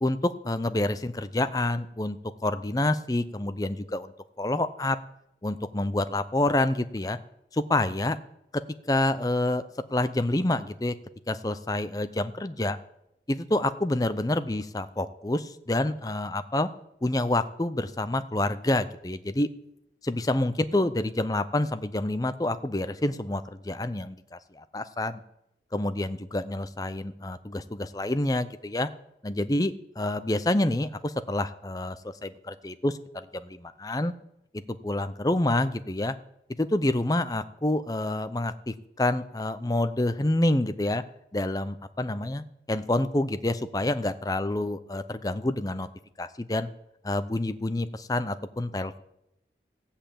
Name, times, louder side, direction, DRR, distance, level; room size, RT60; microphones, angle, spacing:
voice 1, 0.0-5.0 5.4-7.2 7.5-8.2 8.5-8.6 8.9-9.6 9.9-10.9 11.3-12.8 13.3-16.7 17.0-19.5 20.0-25.2 25.7-28.9 29.2-34.1 34.5-36.2 36.6-41.0 41.3-45.9 46.2-46.7 47.0-49.0, left 1 dB, 20° left, 12 dB, 0.6 m, -28 dB
15.5 x 5.7 x 8.6 m, 0.81 s
head